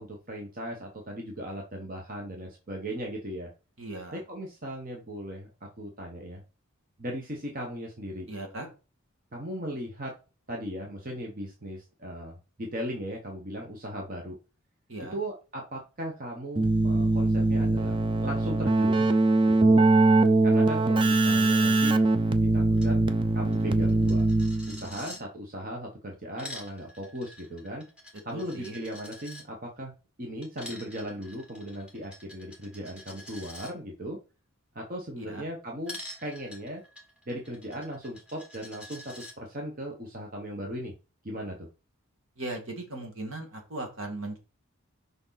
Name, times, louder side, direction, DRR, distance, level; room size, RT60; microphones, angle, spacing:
voice 1, 0.0-3.5 4.1-5.5 5.8-6.4 7.0-8.3 9.3-10.1 10.5-14.4 15.1-19.1 19.5-19.9 20.4-22.0 22.4-23.1 23.3-24.2 24.7-27.8 28.2-34.2 34.7-36.8 37.3-40.9 41.2-41.7, equal, 40° right, 0 dB, 1.2 m, -37 dB
voice 2, 3.8-4.2 8.3-8.7 14.9-15.2 28.3-28.8 35.2-35.5 42.4-44.4, right 2 dB, 60° right, 3 dB, 2.0 m, -38 dB
Keyboard (musical), 16.6-24.9, right 2 dB, 20° right, 0.5 m, -22 dB
Coin (dropping), 22.7-22.9 23.2-23.3 23.5-25.2 26.1-29.4 30.4-33.7 35.9-39.3, left 1 dB, 5° right, 1.6 m, -46 dB
6.7 x 5.3 x 4.0 m, 0.33 s
head